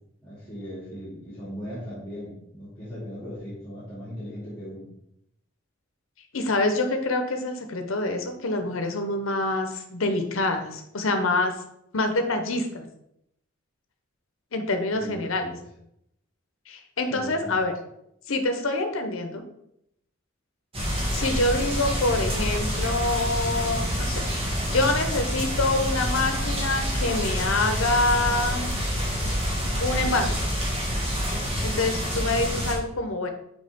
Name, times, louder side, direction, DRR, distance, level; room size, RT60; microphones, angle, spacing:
voice 1, 0.2-4.9 14.9-15.6 17.1-17.6, equal, 10° left, -9 dB, 2.4 m, -38 dB
voice 2, 6.3-11.5 11.9-12.9 14.5-15.5 16.7-17.7 18.3-19.4 21.1-24.3 24.7-28.7 29.8-30.4 31.6-33.3, left 2 dB, 80° left, 6 dB, 0.9 m, -26 dB
sound 1, 20.7-32.7, equal, 30° right, 1.7 m, -27 dB
6.6 x 4.9 x 3.6 m, 0.76 s
head